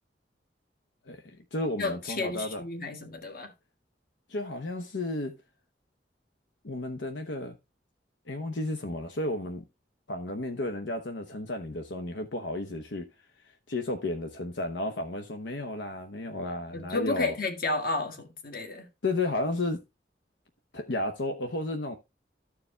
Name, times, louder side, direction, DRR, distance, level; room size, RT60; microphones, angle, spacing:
voice 1, 1.1-2.6 4.3-5.3 6.6-7.6 8.3-9.6 10.1-13.1 13.7-17.3 19.0-19.8 20.7-22.0, left 2 dB, 85° left, 0.9 m, -33 dB
voice 2, 1.8-3.5 16.7-18.9, left 3 dB, 55° left, 1.7 m, -32 dB
13.5 x 4.8 x 3.3 m
head